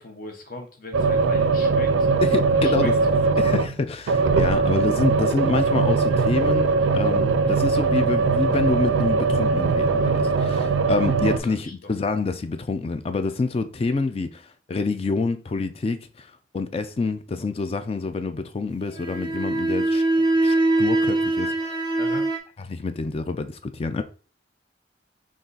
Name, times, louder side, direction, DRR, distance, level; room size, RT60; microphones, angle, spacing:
voice 1, 0.0-2.1 2.6-2.9 3.2-3.3 7.4-7.5 11.4-11.7 22.0-22.3, left 2 dB, 50° left, 0.8 m, -38 dB
sound 1, 0.9-3.8 4.1-11.4, right 4 dB, 90° right, 0.4 m, -21 dB
voice 2, 2.2-2.9 3.4-14.4 14.7-16.3 16.5-20.0 20.4-21.5 22.7-24.0, left 3 dB, 30° left, 0.3 m, -27 dB
sound 2, 18.9-22.4, right 2 dB, 25° right, 0.5 m, -22 dB
3.7 x 2.4 x 3.9 m
head